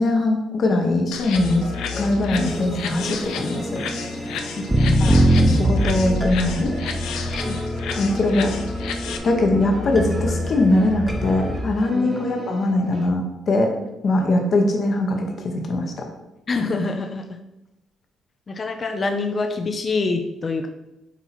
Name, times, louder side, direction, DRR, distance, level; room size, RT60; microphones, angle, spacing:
voice 1, 0.0-1.7 2.0-3.8 5.0-6.7 7.9-8.5 9.2-13.7 14.0-16.0, left 2 dB, 55° left, 2 dB, 1.1 m, -21 dB
sound 1, 1.1-9.2, left 6 dB, 85° left, 0.6 m, -33 dB
sound 2, 1.4-11.6, equal, 5° right, 0.9 m, -24 dB
sound 3, 1.5-13.1, right 1 dB, 40° right, 1.3 m, -39 dB
voice 2, 4.6-4.9 7.5-7.6 11.9-12.1 16.5-17.2 18.5-20.7, left 3 dB, 40° left, 5 dB, 0.5 m, -25 dB
8.0 x 2.9 x 4.3 m, 0.95 s
cardioid pair, 90°, 0 cm